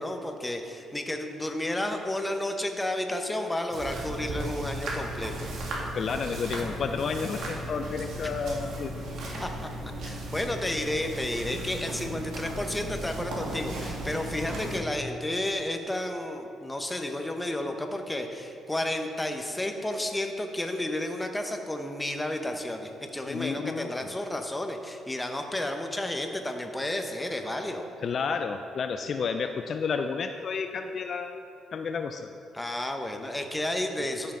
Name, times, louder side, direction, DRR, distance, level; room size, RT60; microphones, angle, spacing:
voice 1, 0.0-5.3 8.2-8.3 9.4-27.8 32.5-34.3, left 1 dB, 10° left, 4 dB, 0.9 m, -32 dB
sound 1, 3.7-14.8, right 1 dB, 70° right, 1.6 m, -36 dB
voice 2, 5.9-9.0 23.3-23.9 28.0-31.4 31.7-32.3, left 5 dB, 55° left, 7 dB, 0.4 m, -31 dB
13.5 x 5.7 x 3.8 m, 2.7 s
cardioid pair, 90°, 0 cm